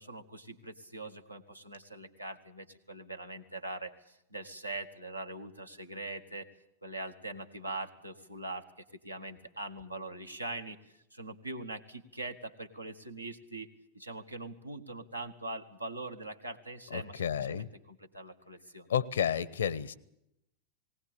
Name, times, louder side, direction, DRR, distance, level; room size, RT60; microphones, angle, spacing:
voice 1, 0.0-6.5 6.8-8.7 9.0-13.7 13.9-18.9, right 2 dB, 85° right, 5 dB, 1.7 m, -42 dB
voice 2, 16.9-17.7 18.9-19.9, left 8 dB, 65° left, 21 dB, 0.9 m, -31 dB
19.0 x 19.0 x 8.4 m, 0.79 s
figure-of-eight pair, 90°, 0 cm